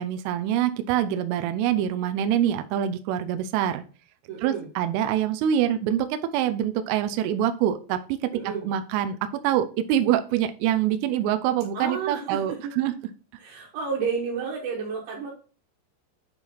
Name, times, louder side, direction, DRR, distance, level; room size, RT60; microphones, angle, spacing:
voice 1, 0.0-3.8 4.4-12.9, right 10 dB, 80° right, 9 dB, 3.1 m, -25 dB
voice 2, 4.3-4.7 8.3-8.7 11.7-12.7 13.4-15.3, right 5 dB, 65° right, -4 dB, 3.5 m, -31 dB
9.5 x 3.6 x 4.5 m, 0.37 s
omnidirectional pair, 5.9 m